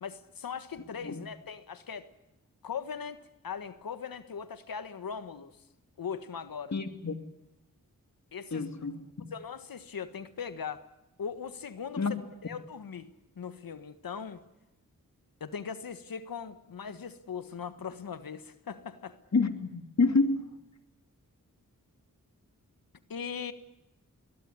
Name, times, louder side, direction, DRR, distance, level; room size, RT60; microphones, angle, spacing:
voice 1, 0.0-2.1 2.6-5.5 6.0-6.7 8.3-8.7 9.3-10.9 11.2-12.2 12.4-13.1 13.4-14.4 15.4-19.2 23.1-23.5, left 6 dB, 85° left, 12 dB, 1.5 m, -39 dB
voice 2, 6.7-7.1 8.5-9.0 12.0-12.1 19.3-20.5, left 3 dB, 55° left, 9 dB, 2.7 m, -28 dB
22.0 x 21.5 x 9.7 m, 0.91 s
cardioid pair, 50°, 34 cm